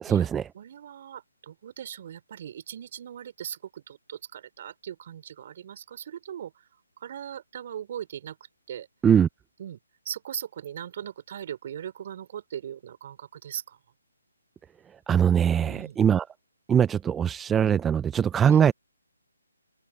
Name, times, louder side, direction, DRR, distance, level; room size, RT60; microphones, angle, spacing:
voice 1, 0.0-0.5 9.0-9.3 15.1-16.2 16.7-18.7, right 8 dB, 10° right, 0.5 m, -21 dB
voice 2, 0.5-6.7 7.0-8.4 8.7-8.9 9.6-9.8 10.0-13.8 15.6-16.0 18.5-18.6, right 9 dB, 45° right, 4.1 m, -39 dB
figure-of-eight pair, 150°, 0 cm